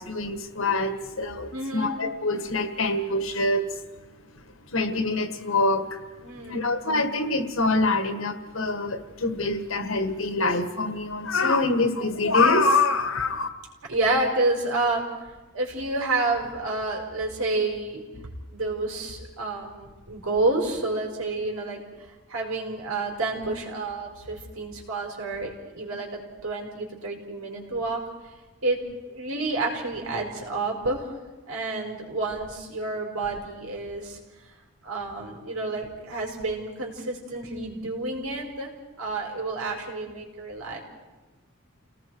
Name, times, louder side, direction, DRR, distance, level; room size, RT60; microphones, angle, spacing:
voice 1, 0.0-3.8 4.7-6.0 6.5-13.5, left 2 dB, 65° left, 8 dB, 1.7 m, -25 dB
voice 2, 1.5-1.9 6.2-6.7 13.9-18.0 18.5-21.8 22.3-28.0 28.6-28.8 29.1-31.1 31.5-34.2 34.8-40.8, right 2 dB, 80° right, 0 dB, 4.9 m, -29 dB
29.5 x 18.5 x 4.8 m, 1.2 s
head